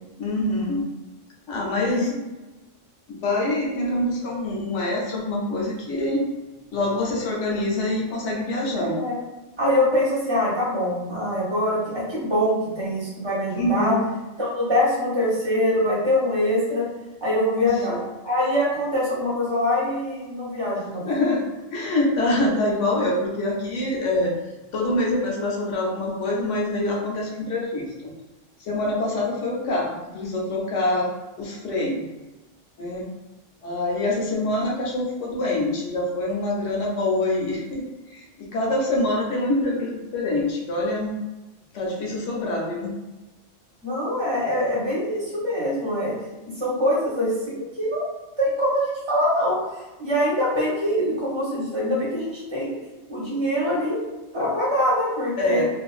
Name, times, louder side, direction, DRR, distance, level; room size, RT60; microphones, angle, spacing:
voice 1, 0.2-0.9 1.5-2.1 3.1-6.2 6.7-9.0 13.6-14.0 17.9-18.0 21.0-21.5 21.7-24.3 24.7-28.1 28.6-31.1 31.4-32.1 32.8-33.1 33.6-41.1 41.7-42.9 55.4-55.7, left 1 dB, 75° left, -2 dB, 1.0 m, -25 dB
voice 2, 1.8-2.1 8.8-9.2 9.6-13.9 14.4-16.9 17.2-18.0 18.2-21.0 43.8-46.1 46.5-48.1 48.4-52.7 53.1-54.0 54.3-55.7, left 1 dB, 25° right, -7 dB, 0.8 m, -24 dB
2.5 x 2.4 x 2.3 m, 1.1 s
omnidirectional pair, 1.3 m